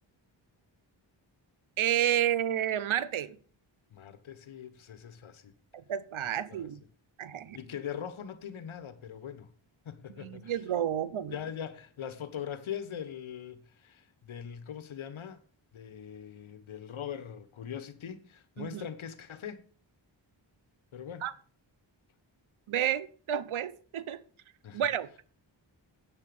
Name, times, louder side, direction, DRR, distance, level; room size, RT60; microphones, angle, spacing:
voice 1, 1.8-3.4 5.7-6.8 7.2-7.6 10.1-11.4 18.6-18.8 21.2-21.3 22.7-24.2 24.7-25.1, right 10 dB, 90° right, 0.9 m, -30 dB
voice 2, 3.9-5.5 6.5-6.7 7.5-9.5 9.8-10.5 11.3-15.4 15.7-19.6 20.9-21.3 24.6-24.8, left 8 dB, 80° left, 1.3 m, -41 dB
9.0 x 7.4 x 6.9 m
cardioid pair, 60°, 47 cm